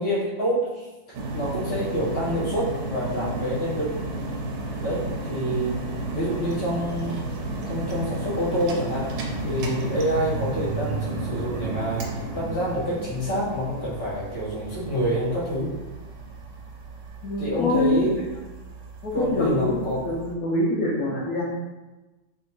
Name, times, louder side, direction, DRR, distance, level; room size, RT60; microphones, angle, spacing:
voice 1, 0.0-3.9 4.8-5.8 6.1-7.2 7.6-15.7 17.4-18.1 19.1-20.0, equal, 20° left, -9 dB, 0.7 m, -27 dB
sound 1, 1.1-20.3, right 2 dB, 70° right, 1.0 m, -33 dB
voice 2, 17.2-18.1 19.0-21.4, left 2 dB, 85° left, -6 dB, 0.8 m, -25 dB
3.5 x 2.8 x 3.0 m, 1.1 s
omnidirectional pair, 2.2 m